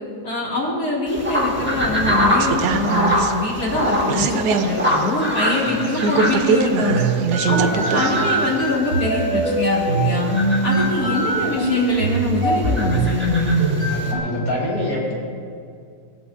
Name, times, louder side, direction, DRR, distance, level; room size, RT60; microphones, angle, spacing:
voice 1, 0.2-7.0 7.5-10.3 10.6-13.6, left 2 dB, 70° left, -4 dB, 2.6 m, -24 dB
sound 1, 1.1-14.1, equal, 10° right, 1.2 m, -25 dB
sound 2, 2.4-8.2 8.5-8.6, right 6 dB, 85° right, 1.2 m, -22 dB
sound 3, 6.7-14.2, right 2 dB, 60° right, 3.4 m, -22 dB
voice 2, 7.3-8.3 10.8-11.4 13.9-15.1, left 1 dB, 25° left, -7 dB, 2.6 m, -27 dB
20.0 x 7.5 x 2.4 m, 2.3 s
omnidirectional pair, 1.7 m